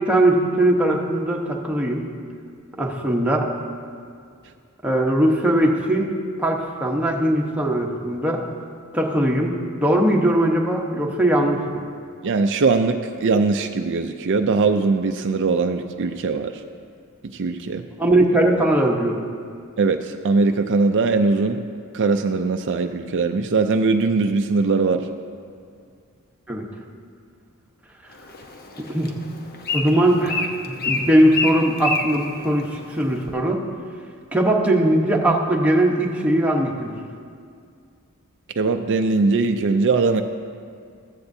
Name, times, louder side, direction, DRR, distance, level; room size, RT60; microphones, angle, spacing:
voice 1, 0.1-2.0 2.8-3.5 4.8-6.1 6.4-8.4 8.9-9.5 9.8-11.6 18.0-19.2 26.5-26.6 28.9-29.1 29.7-33.6 34.3-37.0, right 1 dB, 5° right, -1 dB, 1.0 m, -20 dB
voice 2, 12.2-16.5 17.3-17.8 19.8-21.6 21.9-25.1 38.6-40.2, right 4 dB, 55° right, 6 dB, 0.4 m, -20 dB
Bird, 28.1-33.3, left 3 dB, 45° left, 0.9 m, -29 dB
15.0 x 14.0 x 2.7 m, 2.2 s
head